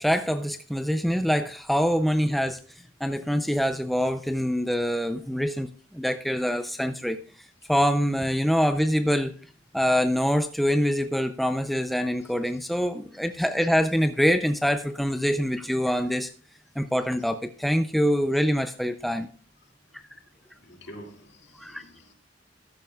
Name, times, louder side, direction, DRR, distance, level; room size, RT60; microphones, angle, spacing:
voice 1, 0.0-2.6 3.0-7.2 7.7-9.4 9.7-16.3 16.8-19.3 21.6-21.8, equal, ahead, 8 dB, 0.4 m, -25 dB
voice 2, 20.5-22.1, equal, 60° left, 2 dB, 2.4 m, -47 dB
13.0 x 13.0 x 2.3 m, 0.40 s
head